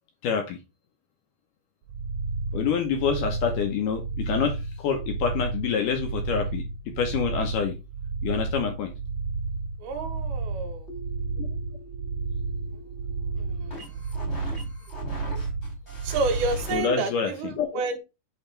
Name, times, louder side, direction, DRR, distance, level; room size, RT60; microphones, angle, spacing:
voice 1, 0.2-0.6 2.5-6.7 7.0-7.8 8.2-8.9 11.4-11.5 16.7-17.3 17.6-17.7, left 6 dB, 75° left, 2.0 m, -27 dB
sound 1, 1.9-16.6, right 3 dB, 90° right, 1.8 m, -32 dB
voice 2, 9.8-10.9 12.7-12.8 13.3-14.1 16.0-18.0, right 3 dB, 75° right, 3.1 m, -30 dB
sound 2, 10.9-16.8, left 1 dB, 30° left, 1.3 m, -41 dB
8.7 x 3.0 x 4.3 m
omnidirectional pair, 4.7 m